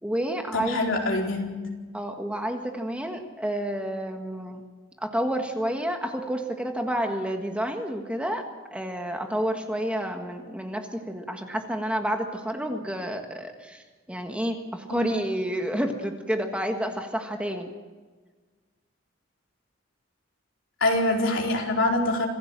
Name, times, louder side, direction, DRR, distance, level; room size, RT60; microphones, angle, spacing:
voice 1, 0.0-0.9 1.9-4.6 5.0-8.4 8.7-13.8 14.1-17.7, equal, 5° right, 4 dB, 1.6 m, -29 dB
voice 2, 0.5-1.6 14.9-15.0 20.8-22.3, left 2 dB, 70° left, 0 dB, 4.5 m, -24 dB
26.0 x 16.0 x 7.5 m, 1.4 s
head